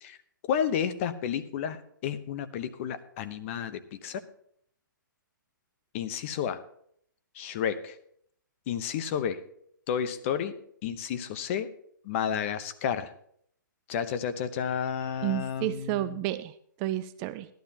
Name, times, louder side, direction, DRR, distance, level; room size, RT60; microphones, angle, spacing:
voice 1, 0.5-4.2 5.9-6.6 7.3-8.0 8.7-9.4 9.9-10.6 10.8-11.7 12.0-13.1 13.9-16.2, left 8 dB, 40° left, 11 dB, 0.8 m, -31 dB
voice 2, 15.2-17.5, right 15 dB, 25° right, 13 dB, 0.3 m, -31 dB
15.0 x 11.5 x 2.8 m, 0.66 s
hypercardioid pair, 140°, 11 cm